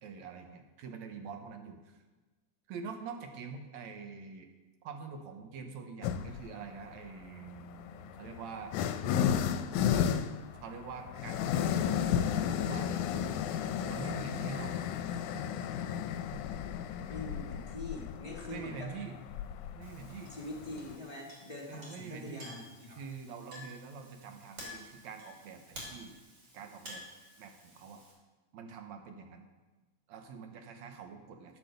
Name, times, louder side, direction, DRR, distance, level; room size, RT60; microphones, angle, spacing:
voice 1, 0.0-2.0 2.7-4.5 4.8-8.8 10.5-12.9 13.9-14.8 16.3-16.4 18.5-19.2 19.7-20.4 21.7-22.5 22.9-26.2 26.5-27.0 27.4-28.0 28.5-29.5 30.1-31.6, right 5 dB, 70° right, 5 dB, 2.1 m, -45 dB
sound 1, 6.0-6.5 7.5-21.0, left 8 dB, 80° left, 2.0 m, -33 dB
voice 2, 17.1-18.9 20.3-23.0, left 2 dB, 30° left, -2 dB, 0.7 m, -43 dB
Chink clink, 19.8-28.1, equal, 45° right, 4.0 m, -51 dB
10.0 x 7.5 x 6.7 m, 1.2 s
omnidirectional pair, 3.6 m